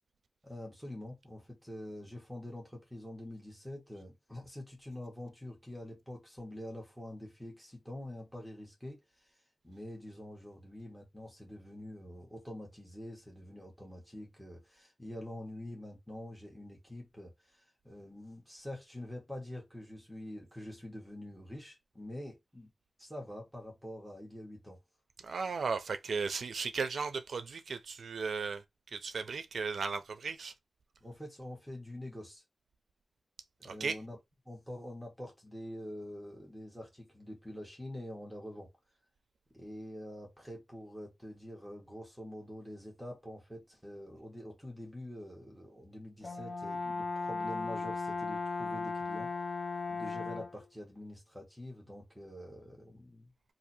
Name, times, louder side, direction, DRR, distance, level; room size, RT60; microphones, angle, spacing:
voice 1, 0.4-22.7 23.0-24.8 31.0-32.4 33.6-34.2 34.4-38.7 39.5-49.4 49.9-53.3, left 1 dB, ahead, 1.2 m, -46 dB
voice 2, 25.2-28.6 28.9-30.5 33.6-34.0, right 5 dB, 80° right, 0.4 m, -36 dB
Brass instrument, 46.2-50.6, left 4 dB, 45° left, 0.8 m, -36 dB
2.7 x 2.6 x 4.1 m
wide cardioid pair, 145°, 0 cm